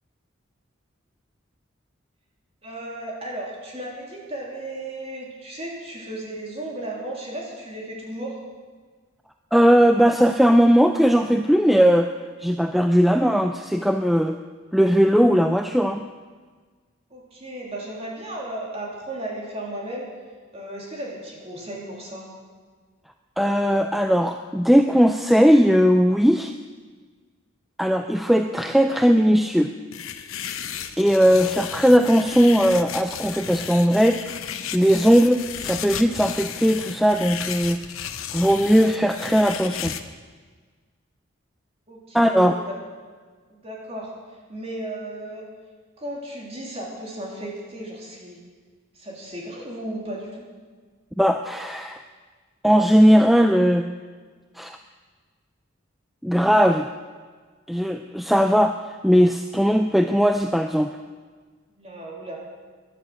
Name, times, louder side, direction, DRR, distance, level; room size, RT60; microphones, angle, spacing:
voice 1, 2.6-8.4 17.1-20.1 20.5-22.3 41.9-42.7 43.5-44.1 44.5-45.4 46.0-48.4 48.9-50.4 61.7-62.4, right 1 dB, 30° right, -3 dB, 3.1 m, -35 dB
voice 2, 9.5-12.1 12.4-14.4 14.7-16.1 23.4-26.5 27.8-29.7 31.0-34.2 34.7-37.8 38.3-39.9 42.1-42.5 51.2-52.0 52.6-53.9 54.6-54.8 56.2-56.9 57.7-61.0, equal, ahead, 6 dB, 0.3 m, -18 dB
sound 1, 29.9-40.0, left 8 dB, 80° left, 0.9 m, -34 dB
13.0 x 10.5 x 7.6 m, 1.5 s
head